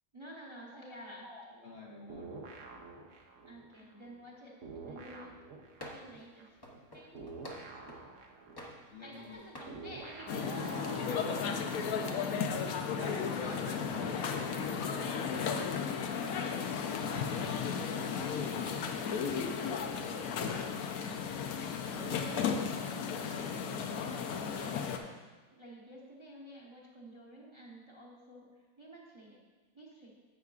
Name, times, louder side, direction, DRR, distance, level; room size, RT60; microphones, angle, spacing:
voice 1, 0.1-1.3 3.5-5.4 5.9-6.6 6.9-7.6 9.0-12.4 13.6-15.4 20.0-20.8 21.9-25.1 25.5-28.5 28.8-29.4 29.7-30.1, right 1 dB, 20° right, -4 dB, 1.0 m, -51 dB
voice 2, 0.7-2.5 3.8-3.9 8.9-9.4 12.9-19.2, left 1 dB, 50° left, -1 dB, 1.1 m, -48 dB
sound 1, 2.1-4.3 4.6-12.2, right 4 dB, 60° right, 1.1 m, -48 dB
sound 2, 5.8-6.2 6.6-8.1 8.6-9.2 9.5-9.8, left 1 dB, 20° left, 0.7 m, -48 dB
sound 3, 10.3-25.0, left 6 dB, 75° left, 1.1 m, -34 dB
10.5 x 8.0 x 2.4 m, 1.3 s
omnidirectional pair, 1.6 m